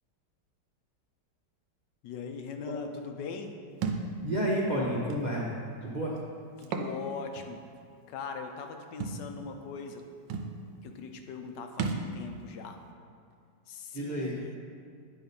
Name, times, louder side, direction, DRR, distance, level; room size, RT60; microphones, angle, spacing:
voice 1, 2.0-3.6 6.6-7.7 8.1-10.0 10.8-12.8 13.7-14.6, left 5 dB, 80° left, 5 dB, 1.3 m, -40 dB
Thump thud, 3.8-4.1 5.1-5.2 6.6-6.9 7.4-7.5 9.0-9.2 10.0-10.1 10.3-10.5 11.8-12.1, right 5 dB, 85° right, 1.3 m, -32 dB
voice 2, 4.2-6.1 13.9-14.4, equal, 40° right, -5 dB, 0.6 m, -30 dB
9.4 x 4.0 x 5.3 m, 2.2 s
omnidirectional pair, 1.9 m